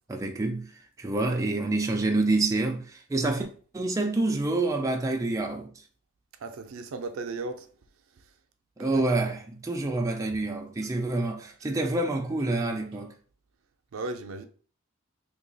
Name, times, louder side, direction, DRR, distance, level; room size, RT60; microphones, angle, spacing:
voice 1, 0.1-0.7 1.0-3.5 3.7-5.7 8.8-13.1, right 2 dB, 15° right, 0.3 m, -27 dB
voice 2, 6.4-7.7 8.1-8.3 8.8-9.0 10.8-12.0 12.9-13.0 13.9-14.5, right 3 dB, 80° right, 0.4 m, -38 dB
2.8 x 2.3 x 3.9 m
head